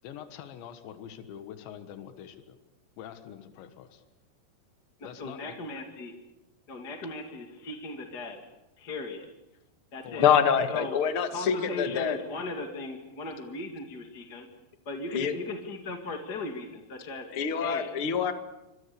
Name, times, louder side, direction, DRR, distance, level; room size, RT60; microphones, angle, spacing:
voice 1, 0.0-2.6 3.0-4.0 5.0-5.6 10.0-10.8, left 9 dB, 90° left, 9 dB, 3.8 m, -44 dB
voice 2, 5.0-6.2 6.7-8.4 8.8-9.3 9.9-10.3 10.7-11.0 11.3-14.5 14.9-17.3 17.6-17.9, left 2 dB, 30° left, 3 dB, 2.2 m, -37 dB
voice 3, 10.2-12.2 15.1-15.3 17.3-18.3, left 8 dB, 50° left, 8 dB, 1.7 m, -25 dB
28.0 x 24.5 x 6.9 m, 0.95 s
omnidirectional pair, 5.0 m